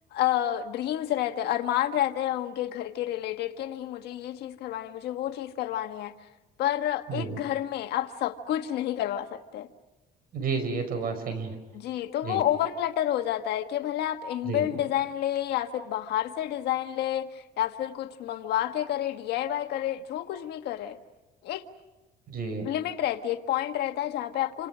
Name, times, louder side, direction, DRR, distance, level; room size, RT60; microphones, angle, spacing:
voice 1, 0.1-6.1 6.6-9.7 11.7-21.0 21.4-21.6 22.6-24.7, left 12 dB, 75° left, 7 dB, 1.5 m, -29 dB
voice 2, 10.3-11.5 12.2-12.4 14.5-14.7 22.3-22.7, right 4 dB, 60° right, 9 dB, 5.6 m, -31 dB
28.5 x 26.5 x 6.2 m, 1.1 s
cardioid pair, 110°, 17 cm